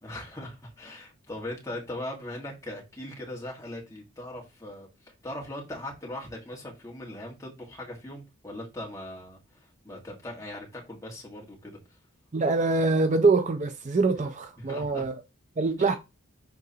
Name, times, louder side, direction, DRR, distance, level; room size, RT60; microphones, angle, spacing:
voice 1, 0.0-11.8 14.6-15.0 15.8-15.9, left 1 dB, 15° left, 1.6 m, -40 dB
voice 2, 12.3-15.2 15.6-15.9, right 3 dB, 35° right, 0.4 m, -24 dB
10.5 x 3.7 x 2.8 m
head